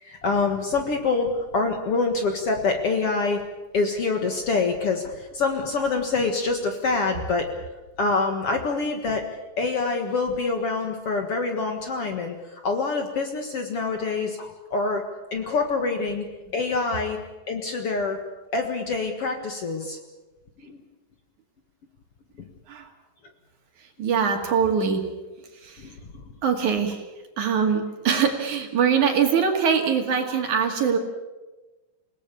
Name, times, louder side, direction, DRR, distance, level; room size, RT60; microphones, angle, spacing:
voice 1, 0.0-3.4 3.7-7.5 8.0-9.2 9.6-15.0 15.3-16.3 16.5-17.2 17.5-18.2 18.5-20.0 20.6-20.8 25.8-26.2, left 4 dB, 50° left, 4 dB, 2.2 m, -26 dB
voice 2, 23.8-25.0 25.5-25.9 26.4-27.1 27.4-31.0, right 6 dB, 60° right, 4 dB, 3.6 m, -23 dB
29.0 x 18.5 x 7.0 m, 1.1 s
omnidirectional pair, 4.0 m